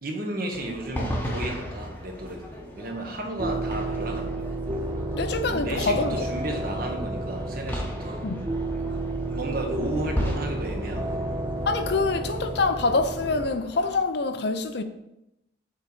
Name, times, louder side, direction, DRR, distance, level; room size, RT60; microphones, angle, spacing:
voice 1, 0.0-4.4 5.5-8.3 9.3-11.3, right 1 dB, 50° right, 1.3 m, -33 dB
sound 1, 0.5-14.0, equal, 10° left, 1.0 m, -37 dB
sound 2, 3.4-13.5, right 2 dB, 20° right, 0.5 m, -31 dB
voice 2, 5.1-6.2 8.2-8.4 11.7-14.8, left 3 dB, 60° left, 0.6 m, -25 dB
7.4 x 4.1 x 5.4 m
head